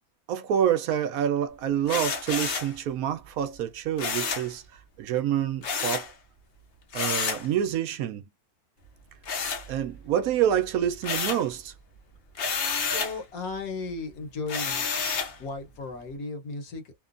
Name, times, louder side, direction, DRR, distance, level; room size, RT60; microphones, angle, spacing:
voice 1, 0.3-4.6 5.0-6.1 6.9-8.2 9.7-11.7, right 10 dB, 75° right, 1.0 m, -27 dB
sound 1, 1.9-2.7 4.0-4.5 5.6-6.1 6.9-7.5 9.2-10.1 10.5-11.5 12.3-13.2 14.5-15.4, left 5 dB, 50° left, 0.7 m, -30 dB
voice 2, 12.9-14.9 15.4-17.0, left 3 dB, 70° left, 1.4 m, -35 dB
3.0 x 2.2 x 2.4 m
omnidirectional pair, 1.6 m